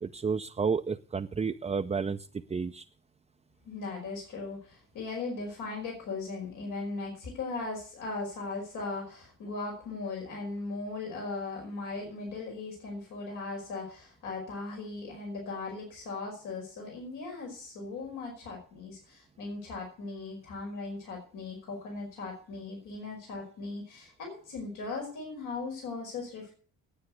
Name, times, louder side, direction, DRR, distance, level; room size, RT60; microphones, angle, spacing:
voice 1, 0.0-2.8, right 5 dB, 20° right, 5 dB, 0.6 m, -31 dB
voice 2, 3.7-26.5, left 3 dB, 85° left, 0 dB, 5.3 m, -38 dB
10.5 x 8.7 x 8.3 m, 0.43 s
cardioid pair, 90°, 30 cm